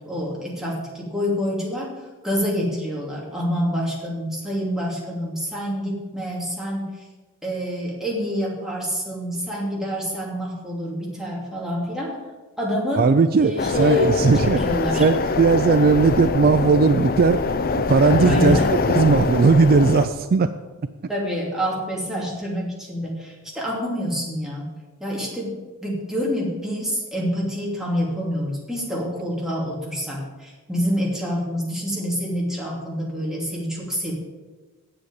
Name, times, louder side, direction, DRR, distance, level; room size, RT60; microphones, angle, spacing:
voice 1, 0.0-1.9 2.2-6.8 7.4-12.2 12.6-13.1 13.4-15.1 18.2-18.8 21.1-24.7 25.0-25.5 25.8-34.1, equal, ahead, -4 dB, 2.7 m, -27 dB
voice 2, 13.0-14.6 15.0-17.4 17.9-20.5, right 4 dB, 45° right, 10 dB, 0.4 m, -17 dB
sound 1, 13.6-20.1, left 4 dB, 45° left, 0.6 m, -23 dB
8.0 x 7.9 x 8.5 m, 1.3 s
head